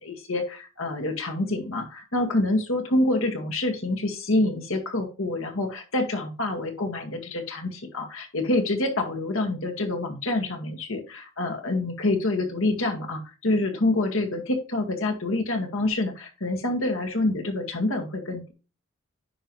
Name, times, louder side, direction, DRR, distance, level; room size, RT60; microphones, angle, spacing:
voice 1, 0.0-18.5, left 2 dB, 70° left, 3 dB, 1.9 m, -27 dB
9.9 x 5.5 x 3.2 m, 0.32 s
head